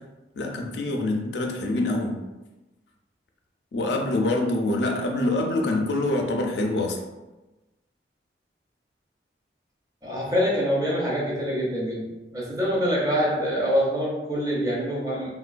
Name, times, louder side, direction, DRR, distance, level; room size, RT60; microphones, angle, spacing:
voice 1, 0.4-2.2 3.7-7.0, left 2 dB, 75° left, 2 dB, 0.4 m, -25 dB
voice 2, 10.0-12.1 12.3-15.3, equal, 20° right, -5 dB, 0.6 m, -25 dB
3.0 x 2.2 x 2.4 m, 1.1 s
head